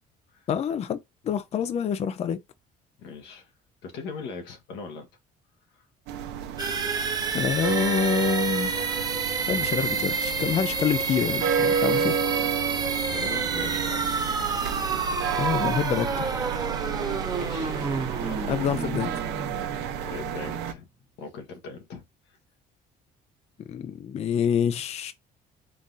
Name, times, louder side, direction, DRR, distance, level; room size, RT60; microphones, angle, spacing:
voice 1, 0.5-1.0 1.2-2.4 7.3-8.9 9.5-12.2 15.4-16.2 18.5-19.2 23.7-25.1, left 8 dB, 40° left, 0.4 m, -27 dB
voice 2, 3.0-3.5 3.8-5.1 5.7-5.8 11.8-14.1 16.8-18.5 20.0-20.9 21.2-22.0, left 4 dB, 90° left, 1.3 m, -40 dB
sound 1, 6.1-20.7, right 7 dB, 90° right, 0.8 m, -31 dB
sound 2, 6.6-20.3, right 4 dB, 25° right, 0.8 m, -29 dB
3.8 x 3.7 x 2.6 m
cardioid pair, 110°, 17 cm